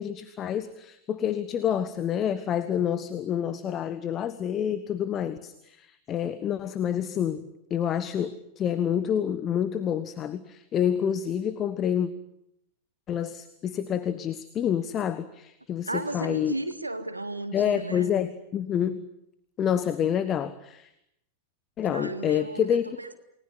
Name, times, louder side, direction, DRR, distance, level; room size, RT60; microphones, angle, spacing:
voice 1, 0.0-12.1 13.1-16.5 17.5-19.1 19.6-20.9 21.8-22.8, left 9 dB, 30° left, 14 dB, 1.3 m, -28 dB
voice 2, 15.9-18.1 21.8-23.1, right 2 dB, 85° right, 9 dB, 2.0 m, -34 dB
29.5 x 20.5 x 9.8 m, 0.80 s
figure-of-eight pair, 90°, 0 cm